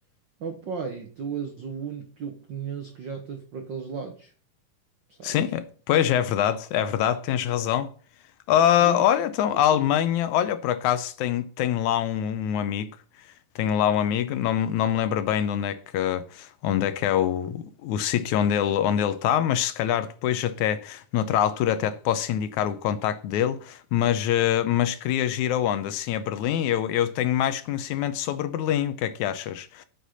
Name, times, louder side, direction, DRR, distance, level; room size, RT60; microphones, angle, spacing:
voice 1, 0.4-4.3 5.1-5.5 8.8-9.1, right 6 dB, 90° right, 1.0 m, -35 dB
voice 2, 5.2-7.9 8.5-12.9 13.6-29.9, left 10 dB, 80° left, 1.9 m, -24 dB
8.3 x 6.0 x 5.6 m
omnidirectional pair, 3.7 m